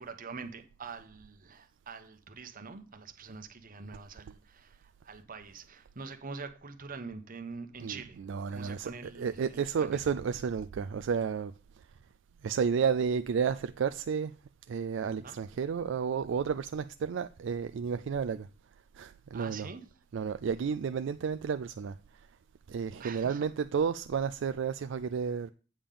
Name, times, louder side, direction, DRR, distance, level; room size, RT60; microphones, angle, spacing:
voice 1, 0.0-8.2 8.5-10.1 15.2-15.4 19.3-19.8 23.0-23.5, right 4 dB, 45° right, 1.0 m, -45 dB
voice 2, 7.8-11.9 12.4-14.3 14.7-18.5 18.9-19.7 20.1-22.3 22.7-25.5, right 6 dB, 65° right, 0.4 m, -32 dB
8.7 x 3.7 x 6.7 m
head